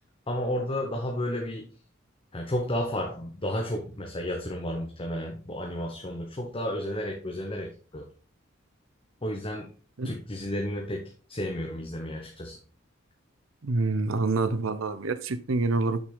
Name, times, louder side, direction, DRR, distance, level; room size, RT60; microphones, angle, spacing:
voice 1, 0.3-1.7 2.3-8.1 9.2-9.7 10.0-12.6, left 1 dB, 25° left, 1.0 m, -32 dB
voice 2, 13.6-16.0, right 3 dB, 80° right, 0.7 m, -27 dB
6.5 x 6.1 x 3.9 m
head